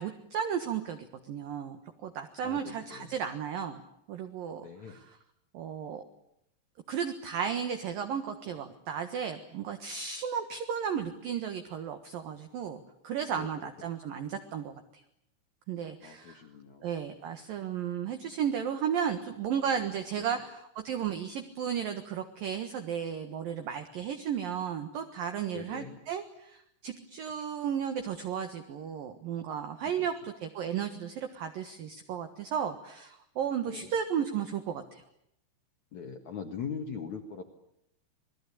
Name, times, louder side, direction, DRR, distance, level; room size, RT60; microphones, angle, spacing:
voice 1, 0.0-3.8 4.1-5.2 5.5-6.0 6.9-15.0 15.7-16.4 16.8-35.0, right 8 dB, 60° right, 7 dB, 2.7 m, -34 dB
voice 2, 2.4-3.1 4.6-5.0 13.3-13.5 16.0-16.9 20.2-20.3 25.5-26.0 29.9-30.1 33.7-33.9 35.9-37.4, left 6 dB, 55° left, 4 dB, 2.2 m, -41 dB
27.5 x 21.0 x 8.6 m, 0.78 s
omnidirectional pair, 5.5 m